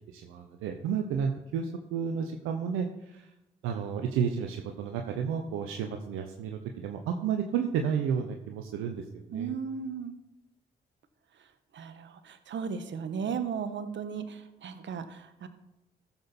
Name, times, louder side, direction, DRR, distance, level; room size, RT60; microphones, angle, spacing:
voice 1, 0.1-3.3 3.6-9.5, right 7 dB, 80° right, 4 dB, 0.8 m, -32 dB
voice 2, 9.3-10.1 11.7-15.5, right 6 dB, 65° right, 10 dB, 1.2 m, -36 dB
14.0 x 7.1 x 4.2 m, 0.91 s
hypercardioid pair, 40°, 21 cm